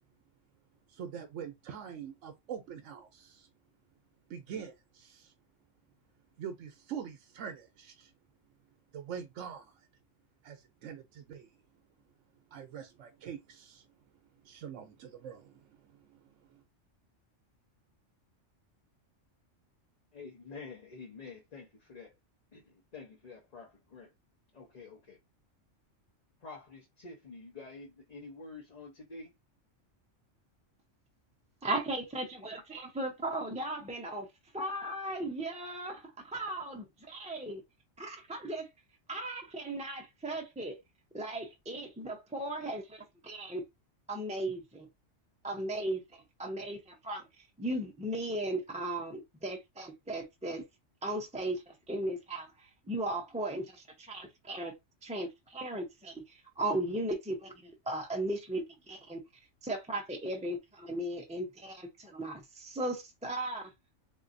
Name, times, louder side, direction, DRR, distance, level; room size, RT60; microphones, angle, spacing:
voice 1, 0.9-3.5 4.3-5.3 6.4-8.1 8.9-9.9 10.4-11.6 12.5-13.9 14.4-16.6, right 8 dB, 80° right, 1.0 m, -44 dB
voice 2, 20.1-22.1 22.5-24.1 24.5-25.2 26.4-29.3, left 4 dB, 40° left, 0.8 m, -48 dB
voice 3, 31.6-34.3 34.5-37.6 38.0-38.7 39.1-40.8 41.1-43.6 44.1-44.9 45.4-47.2 47.6-50.6 51.0-54.7 55.0-59.2 59.6-63.6, right 1 dB, 10° right, 0.5 m, -37 dB
3.7 x 2.7 x 2.5 m
omnidirectional pair, 1.3 m